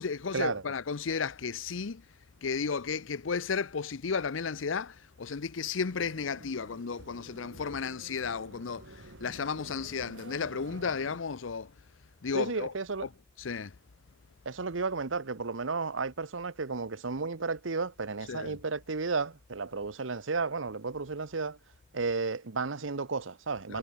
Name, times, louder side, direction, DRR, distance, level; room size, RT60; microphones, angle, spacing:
voice 1, 0.0-2.0 2.4-11.7 12.2-12.7 13.0-13.1 13.4-13.7 18.3-18.6 23.7-23.8, left 5 dB, 90° left, 0.7 m, -33 dB
sound 1, 5.8-11.2, right 2 dB, 70° right, 2.6 m, -50 dB
voice 2, 12.3-13.1 14.4-21.6 21.9-23.8, right 4 dB, 90° right, 1.1 m, -33 dB
head